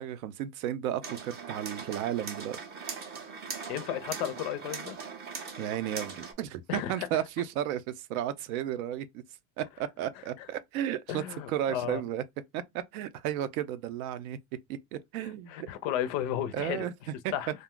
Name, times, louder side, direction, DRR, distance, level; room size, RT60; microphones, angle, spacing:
voice 1, 0.0-3.0 5.6-9.2 9.6-12.2 12.5-14.4 14.7-15.7 16.5-17.3, right 11 dB, 70° right, 0.6 m, -34 dB
sound 1, 1.0-6.3, right 5 dB, 25° right, 0.5 m, -40 dB
voice 2, 3.7-5.0 6.7-7.2 10.4-10.5 11.1-12.0 15.2-16.9 17.3-17.5, left 11 dB, 45° left, 0.4 m, -34 dB
2.4 x 2.2 x 3.6 m
supercardioid pair, 150°, 45 cm